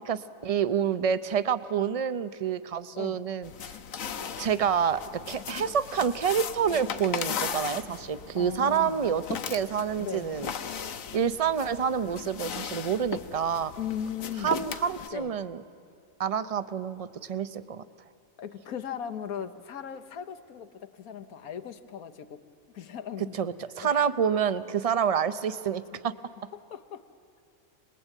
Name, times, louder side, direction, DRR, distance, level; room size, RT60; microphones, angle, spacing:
voice 1, 0.0-3.8 4.4-10.8 11.1-13.7 14.4-15.6 16.2-17.8 23.2-26.1, right 7 dB, 45° right, 13 dB, 0.5 m, -28 dB
sound 1, 3.4-15.1, left 7 dB, 70° left, 1.3 m, -37 dB
voice 2, 8.4-9.0 10.0-10.4 13.8-14.6 15.1-15.3 18.4-22.5 22.7-23.4 23.8-24.2 26.7-27.0, left 9 dB, 90° left, 9 dB, 1.5 m, -38 dB
26.5 x 20.0 x 9.0 m, 2.4 s
omnidirectional pair, 1.5 m